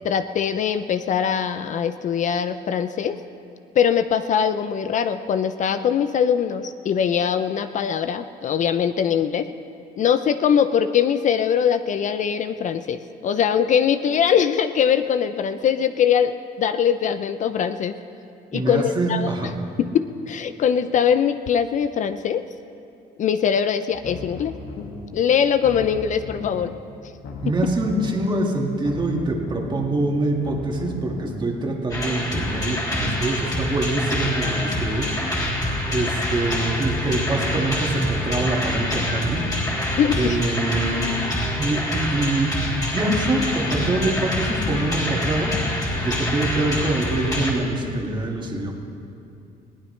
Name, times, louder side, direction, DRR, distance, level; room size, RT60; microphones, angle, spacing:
voice 1, 0.0-3.2 3.8-9.5 10.0-16.3 16.6-18.0 18.5-19.3 19.8-22.4 23.2-24.5 25.1-26.7 40.0-40.4, left 8 dB, 45° left, 10 dB, 0.5 m, -22 dB
voice 2, 18.5-19.5 27.4-35.1 35.9-39.5 40.1-41.1 41.6-42.5 42.9-45.6 46.0-48.7, right 2 dB, 25° right, 0 dB, 2.1 m, -24 dB
sound 1, 23.9-25.2 25.5-26.8 27.1-28.4 28.7-31.5, left 3 dB, 70° left, 1.7 m, -37 dB
sound 2, 31.9-47.5, left 1 dB, 20° left, 3.6 m, -26 dB
21.0 x 16.5 x 3.3 m, 2.6 s
cardioid pair, 110°, 17 cm